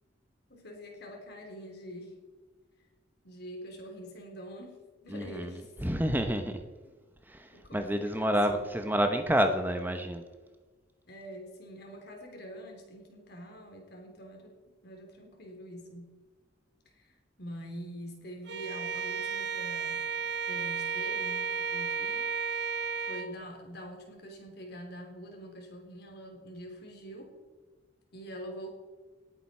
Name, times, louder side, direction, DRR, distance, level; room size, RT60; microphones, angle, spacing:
voice 1, 0.5-2.1 3.2-5.7 6.8-6.9 7.5-9.6 11.1-14.6 14.8-16.1 16.9-20.1 20.4-22.3 23.0-27.4 28.1-28.7, equal, 60° left, 2 dB, 3.5 m, -45 dB
voice 2, 5.1-5.5 5.8-6.6 7.3-10.2, equal, 10° right, 7 dB, 0.8 m, -29 dB
Bowed string instrument, 18.5-23.3, right 6 dB, 65° right, 0.9 m, -33 dB
19.0 x 8.9 x 4.4 m, 1.4 s
head